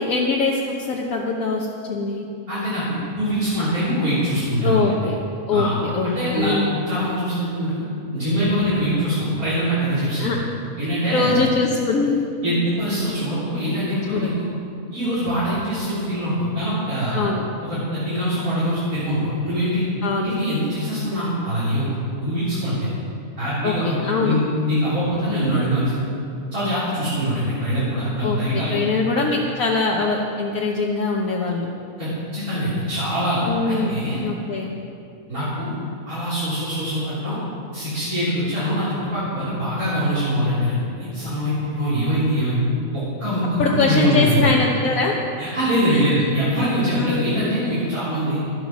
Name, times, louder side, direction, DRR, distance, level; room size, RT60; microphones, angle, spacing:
voice 1, 0.0-2.2 4.6-5.2 5.5-6.8 10.2-10.4 11.1-12.5 14.1-14.3 17.1-17.4 20.0-20.3 23.6-24.4 28.2-28.4 28.7-31.7 33.5-33.9 34.2-34.7 43.6-45.1 45.9-46.1 46.9-47.3, left 3 dB, 70° left, -2 dB, 1.5 m, -22 dB
voice 2, 2.5-2.8 3.2-5.1 5.5-5.7 6.0-6.6 6.9-7.7 8.1-10.3 10.8-11.3 12.4-14.5 14.9-17.2 17.6-19.9 20.2-21.9 22.2-22.9 23.4-25.9 26.5-28.8 32.0-34.2 35.3-35.7 36.1-37.4 37.7-42.6 42.9-44.4 45.4-48.4, equal, 80° right, -12 dB, 4.3 m, -23 dB
12.5 x 12.0 x 6.1 m, 2.5 s
omnidirectional pair, 1.5 m